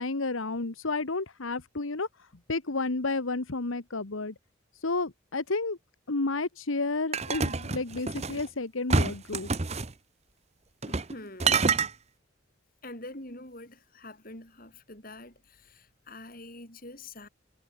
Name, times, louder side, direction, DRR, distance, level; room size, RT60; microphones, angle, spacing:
voice 1, 0.0-4.3 4.8-5.8 6.1-9.5, left 3 dB, 85° left, 1.4 m, -31 dB
sound 1, 7.1-8.4 8.9-9.9 10.8-11.1 11.4-11.9, right 4 dB, 35° right, 1.0 m, -27 dB
voice 2, 10.8-11.9 12.8-17.3, left 2 dB, 45° left, 7.4 m, -45 dB
head